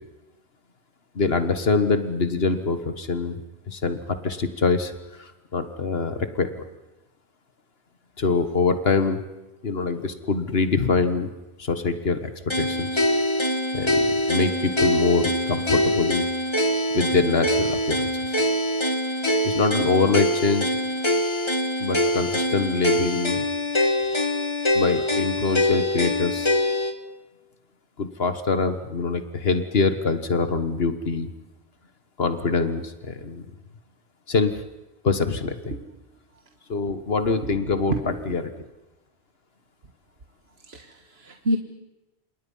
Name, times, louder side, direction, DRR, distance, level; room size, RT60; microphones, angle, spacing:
voice 1, 1.2-3.4 3.7-4.9 5.2-6.6 8.2-9.2 9.6-11.3 11.6-12.9 13.7-16.2 16.9-18.0 18.2-18.4 19.4-20.7 21.8-23.4 24.7-26.5 28.0-31.3 32.2-33.4 34.3-34.6 35.0-35.7 36.7-38.5, left 4 dB, 70° left, 9 dB, 1.7 m, -24 dB
sound 1, 12.5-26.9, left 1 dB, 25° left, 1.6 m, -24 dB
voice 2, 37.4-38.3 40.7-41.6, right 1 dB, 75° right, 4 dB, 1.8 m, -29 dB
28.5 x 27.0 x 5.6 m, 1.0 s
omnidirectional pair, 1.1 m